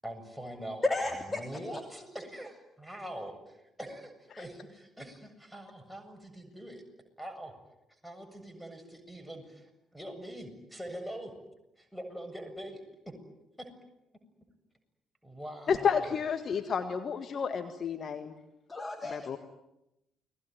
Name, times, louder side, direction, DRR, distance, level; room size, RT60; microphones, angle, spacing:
voice 1, 0.0-0.9 1.3-6.8 7.2-7.5 8.0-11.3 11.8-12.8 13.1-13.2 13.6-13.7 15.2-16.2, right 1 dB, ahead, 9 dB, 7.4 m, -43 dB
voice 2, 0.8-1.6 18.7-19.4, left 2 dB, 20° left, 5 dB, 3.0 m, -32 dB
voice 3, 15.7-18.3 19.1-19.4, left 6 dB, 45° left, 8 dB, 1.8 m, -30 dB
29.5 x 21.5 x 9.3 m, 0.88 s
figure-of-eight pair, 45°, 0 cm